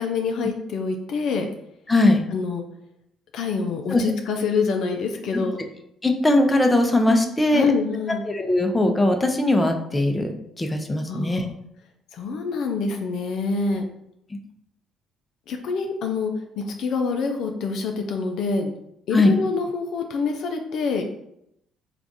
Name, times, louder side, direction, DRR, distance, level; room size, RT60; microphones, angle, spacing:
voice 1, 0.0-1.5 2.3-2.6 3.3-5.6 7.5-8.2 11.1-11.5 12.1-13.8 15.5-18.7 19.1-21.0, left 4 dB, 65° left, 3 dB, 0.5 m, -26 dB
voice 2, 1.9-2.3 3.9-4.0 6.0-7.7 8.3-11.5 19.1-19.3, left 1 dB, 20° left, 4 dB, 0.6 m, -20 dB
3.4 x 2.5 x 3.9 m, 0.77 s
hypercardioid pair, 55°, 0 cm